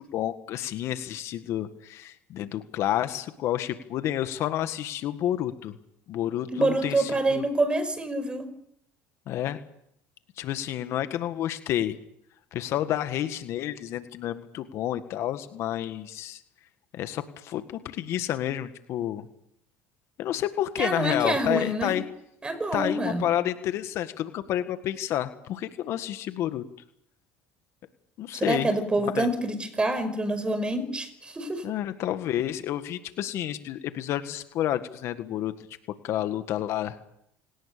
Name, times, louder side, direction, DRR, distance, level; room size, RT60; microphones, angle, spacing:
voice 1, 0.0-5.8 6.1-7.4 9.3-9.6 10.4-12.0 12.5-16.4 16.9-19.3 20.2-22.0 22.7-26.6 28.2-28.7 29.0-29.3 31.6-35.5 36.0-37.0, left 12 dB, 60° left, 1.7 m, -30 dB
voice 2, 6.5-8.5 20.8-21.9 22.4-23.3 28.3-31.6, right 1 dB, 20° right, 5.1 m, -26 dB
27.5 x 18.5 x 6.9 m
supercardioid pair, 95°, 5 cm